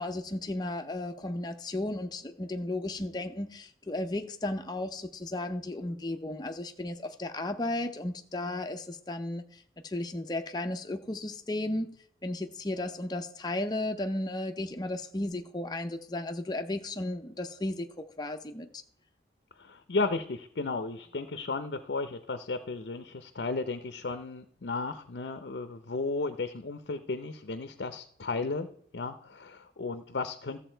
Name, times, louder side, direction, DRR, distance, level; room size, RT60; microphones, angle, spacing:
voice 1, 0.0-11.9 12.2-18.7, left 1 dB, 25° left, 0.6 m, -34 dB
voice 2, 19.6-28.7 28.9-30.6, left 3 dB, 70° left, 0.6 m, -34 dB
13.5 x 7.2 x 4.4 m
head